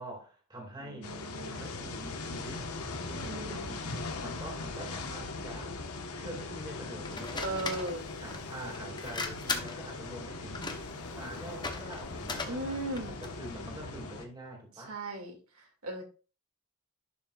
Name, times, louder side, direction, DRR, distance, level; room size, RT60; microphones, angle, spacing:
voice 1, 0.0-1.1 1.4-2.7 3.0-5.8 6.1-7.9 8.2-15.0, right 1 dB, 20° right, 2.2 m, -45 dB
voice 2, 0.8-1.7 3.2-3.8 7.4-8.0 12.5-13.2 14.9-16.0, right 2 dB, 75° right, 2.2 m, -37 dB
sound 1, 1.0-14.3, left 3 dB, 85° left, 1.2 m, -40 dB
sound 2, 7.0-13.4, left 3 dB, 20° left, 0.8 m, -39 dB
11.0 x 5.8 x 2.4 m
head